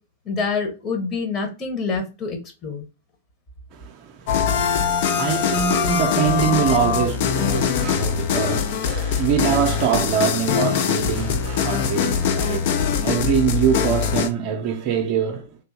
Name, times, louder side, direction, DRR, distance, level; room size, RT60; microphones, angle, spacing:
voice 1, 0.2-2.8, left 4 dB, 25° left, 1.0 m, -26 dB
voice 2, 3.7-15.6, right 8 dB, 35° right, 0.5 m, -24 dB
sound 1, 4.3-14.3, left 7 dB, 45° left, 0.4 m, -22 dB
3.5 x 2.6 x 2.5 m
figure-of-eight pair, 100°, 0 cm